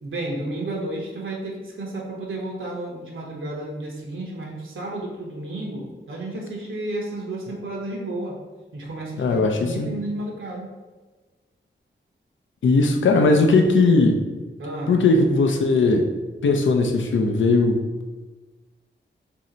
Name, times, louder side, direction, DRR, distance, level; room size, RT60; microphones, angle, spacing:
voice 1, 0.0-8.4 8.7-10.7 14.6-15.1, right 1 dB, 80° right, -2 dB, 0.8 m, -32 dB
voice 2, 9.2-9.9 12.6-14.2 14.9-16.1 16.4-17.8, left 3 dB, 75° left, 4 dB, 0.5 m, -18 dB
3.1 x 2.7 x 3.8 m, 1.3 s
wide cardioid pair, 95°, 20 cm